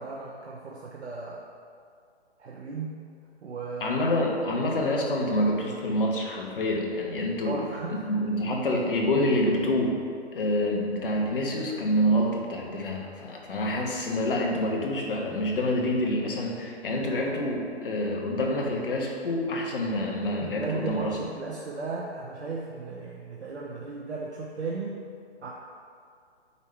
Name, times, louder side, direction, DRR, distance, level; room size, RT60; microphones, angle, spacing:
voice 1, 0.0-1.5 2.4-3.0 3.4-4.0 7.4-8.1 20.4-25.0 25.4-25.5, right 4 dB, 75° right, -3 dB, 0.9 m, -35 dB
voice 2, 3.8-7.6 7.9-10.0 10.3-21.2, left 1 dB, 50° left, -1 dB, 1.3 m, -27 dB
7.1 x 5.5 x 3.3 m, 2.2 s
figure-of-eight pair, 145°, 34 cm